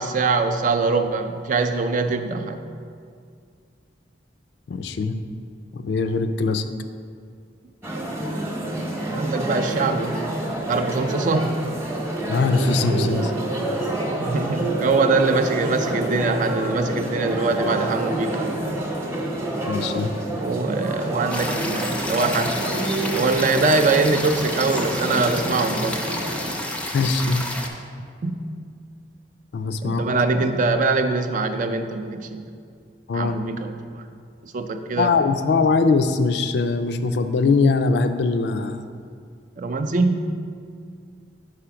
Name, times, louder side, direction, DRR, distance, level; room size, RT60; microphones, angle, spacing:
voice 1, 0.0-2.7 9.1-10.2 10.7-11.6 14.2-18.4 20.4-22.5 23.1-26.0 28.2-28.4 29.8-32.4 33.1-34.0 34.4-35.1 39.6-40.3, right 3 dB, 45° right, 8 dB, 0.4 m, -23 dB
voice 2, 4.7-5.2 5.7-6.6 12.3-13.3 19.7-20.1 26.9-27.5 29.5-30.0 33.1-33.4 35.0-38.8, left 4 dB, 65° left, 9 dB, 0.4 m, -21 dB
restaurant ambiance, 7.8-26.5, right 1 dB, 15° right, 0.8 m, -28 dB
sound 1, 21.3-27.7, left 1 dB, 5° left, 0.5 m, -30 dB
5.0 x 4.9 x 5.7 m, 2.2 s
head